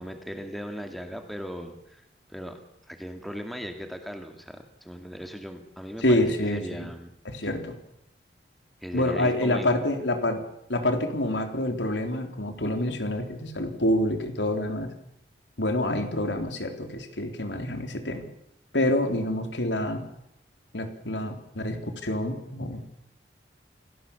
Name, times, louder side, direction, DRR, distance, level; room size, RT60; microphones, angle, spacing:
voice 1, 0.0-2.0 2.3-2.6 2.9-7.1 8.8-9.8, equal, ahead, 5 dB, 2.4 m, -38 dB
voice 2, 6.0-6.9 7.3-7.7 8.9-10.4 10.7-14.9 15.6-18.3 18.7-20.0 20.7-22.8, left 1 dB, 85° left, 6 dB, 3.6 m, -27 dB
28.5 x 18.0 x 7.2 m, 0.80 s
head